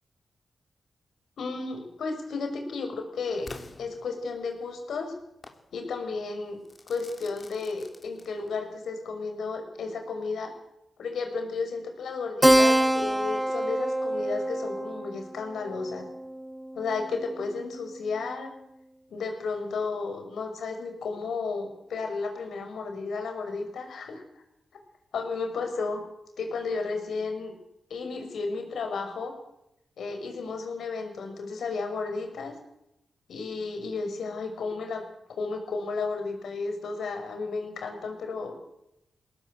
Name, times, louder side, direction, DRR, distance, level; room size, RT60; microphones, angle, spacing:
voice 1, 1.4-3.5 3.8-5.1 5.7-6.6 6.9-10.5 11.0-16.1 16.7-18.5 19.1-24.2 25.1-26.0 26.4-27.5 27.9-29.3 30.0-32.5 33.3-35.0 35.3-38.6, left 4 dB, 85° left, 5 dB, 5.7 m, -33 dB
Crackle / Fireworks, 3.5-4.6 5.4-5.7 6.7-8.7, left 3 dB, 40° left, 3.2 m, -47 dB
Keyboard (musical), 12.4-17.4, right 1 dB, 5° right, 0.8 m, -26 dB
22.0 x 19.0 x 7.9 m, 0.84 s
cardioid pair, 75°, 0 cm